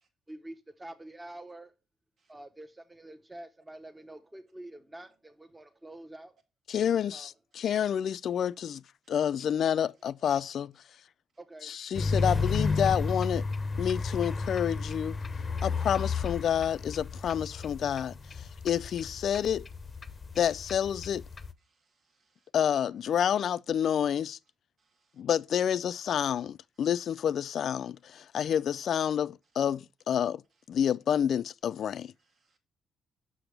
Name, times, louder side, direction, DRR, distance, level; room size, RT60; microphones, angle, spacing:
voice 1, 0.3-1.7 2.3-6.4 7.1-7.3 11.4-11.8, right 1 dB, 15° right, 0.9 m, -47 dB
voice 2, 6.7-8.8 9.1-10.7 11.6-13.4 13.8-15.2 15.6-19.7 20.4-21.2 22.5-24.4 25.2-30.4 30.7-32.1, left 9 dB, 65° left, 0.3 m, -29 dB
sound 1, 11.9-21.5, left 4 dB, 30° left, 0.6 m, -32 dB
voice 3, 21.6-22.5 22.9-23.0 24.8-25.2 32.2-32.6, right 4 dB, 55° right, 1.7 m, -73 dB
6.0 x 5.9 x 3.3 m
cardioid pair, 90°, 0 cm